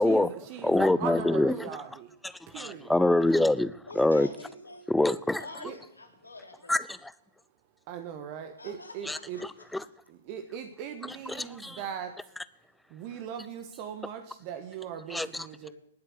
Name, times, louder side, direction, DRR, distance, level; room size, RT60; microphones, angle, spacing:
voice 1, 0.0-2.2 2.5-2.9 5.6-5.8 7.9-9.4 10.1-12.3 12.9-15.7, right 8 dB, 35° right, 8 dB, 1.5 m, -39 dB
voice 2, 0.6-1.7 2.2-4.3 4.9-5.7 6.7-7.1 9.0-9.2 9.7-9.8 11.3-11.8 15.1-15.5, left 1 dB, 5° left, 17 dB, 0.6 m, -25 dB
voice 3, 3.9-4.8 5.4-6.7 8.6-9.4, left 2 dB, 80° left, 3 dB, 3.5 m, -46 dB
19.5 x 8.1 x 8.0 m, 0.75 s
figure-of-eight pair, 110°, 0 cm